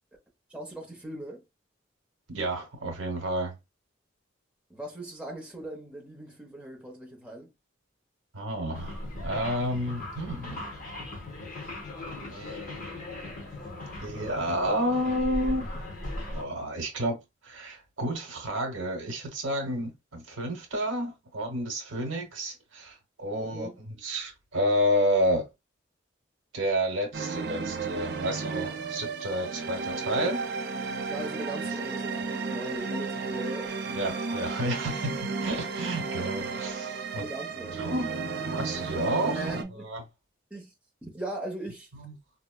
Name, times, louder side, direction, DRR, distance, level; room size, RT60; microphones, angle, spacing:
voice 1, 0.5-1.4 4.7-7.5 23.5-23.8 31.1-34.2 37.2-37.9 39.3-39.9 40.5-40.7 41.0-41.9, right 1 dB, 5° right, 0.7 m, -39 dB
voice 2, 2.3-3.6 8.3-10.6 12.3-13.6 14.0-15.9 16.3-17.2 17.4-23.7 24.0-25.5 26.5-30.4 32.2-32.3 33.9-37.3 37.8-38.1 38.5-40.0 41.9-42.2, equal, 80° right, 1.0 m, -30 dB
sound 1, 8.7-16.4, left 1 dB, 40° left, 0.9 m, -38 dB
sound 2, 27.1-39.6, right 4 dB, 50° right, 0.4 m, -33 dB
4.2 x 2.0 x 2.2 m
head